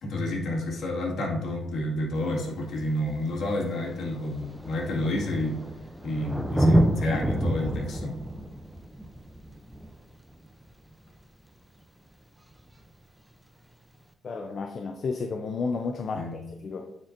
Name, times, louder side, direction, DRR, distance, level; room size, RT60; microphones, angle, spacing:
voice 1, 0.0-5.6 6.0-8.1 16.1-16.3, left 1 dB, 65° left, -2 dB, 1.9 m, -30 dB
Thunder, 2.2-2.3 3.3-3.4 3.6-10.9 12.6-12.7, right 1 dB, 5° right, 0.5 m, -28 dB
voice 2, 14.2-16.9, left 4 dB, 50° left, 5 dB, 0.5 m, -32 dB
9.3 x 4.3 x 2.6 m, 0.84 s
cardioid pair, 90°, 0 cm